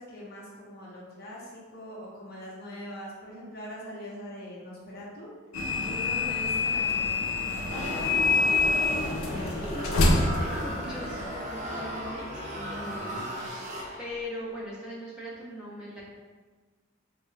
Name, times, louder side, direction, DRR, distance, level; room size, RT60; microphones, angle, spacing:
voice 1, 0.0-5.3 5.8-7.8 12.8-13.3, equal, 50° left, -5 dB, 0.7 m, -42 dB
sound 1, 5.5-11.4, left 3 dB, 85° left, 0.4 m, -26 dB
sound 2, 7.7-14.3, equal, 35° right, 0.5 m, -36 dB
voice 2, 8.9-13.6 14.0-16.0, equal, 5° right, -9 dB, 0.8 m, -40 dB
3.6 x 2.2 x 3.3 m, 1.4 s
head